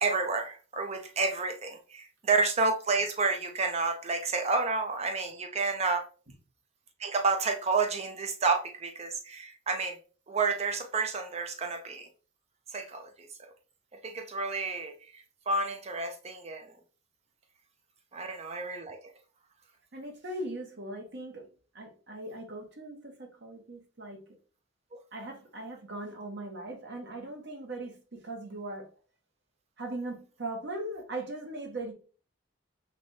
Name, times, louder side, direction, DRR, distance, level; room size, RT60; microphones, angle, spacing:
voice 1, 0.0-6.0 7.0-10.0 10.3-12.1 12.7-13.5 14.0-16.7 18.1-19.0, right 4 dB, 30° right, 0.5 m, -30 dB
voice 2, 19.9-21.5 21.7-24.2 25.1-28.9 29.8-31.9, right 2 dB, 55° right, 1.1 m, -39 dB
3.3 x 3.2 x 4.0 m
head